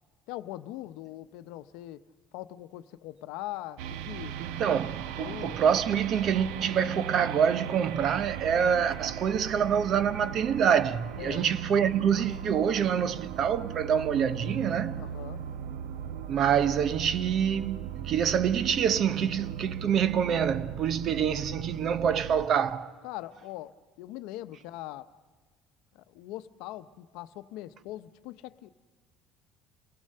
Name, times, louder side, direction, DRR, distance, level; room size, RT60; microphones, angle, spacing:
voice 1, 0.3-2.0 2.3-4.3 5.1-5.6 11.2-11.5 15.0-15.4 23.0-25.1 25.9-28.7, left 15 dB, 75° left, 0.8 m, -41 dB
sound 1, 3.8-22.5, right 9 dB, 90° right, 0.6 m, -39 dB
voice 2, 4.4-15.0 16.3-22.9, right 8 dB, 40° right, 0.8 m, -26 dB
28.0 x 18.0 x 6.7 m
cardioid pair, 160°, 0 cm